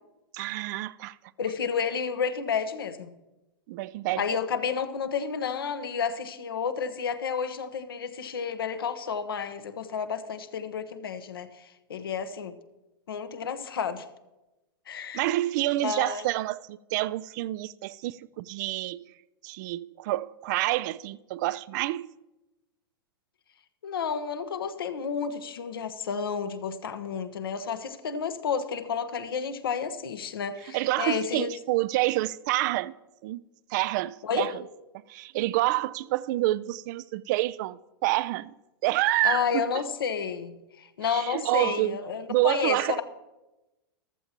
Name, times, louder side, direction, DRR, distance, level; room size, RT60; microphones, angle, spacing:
voice 1, 0.3-1.1 3.7-4.2 15.1-19.0 19.4-22.1 30.7-32.9 33.2-33.4 33.7-34.5 35.1-38.5 38.8-39.6 41.1-42.0 42.3-43.0, right 17 dB, 50° right, 0.4 m, -28 dB
voice 2, 1.4-3.1 4.1-12.5 13.1-14.1 14.9-15.3 15.8-16.3 23.8-31.5 34.2-34.6 39.2-43.0, left 6 dB, 75° left, 1.1 m, -31 dB
14.0 x 14.0 x 3.0 m
hypercardioid pair, 100°, 12 cm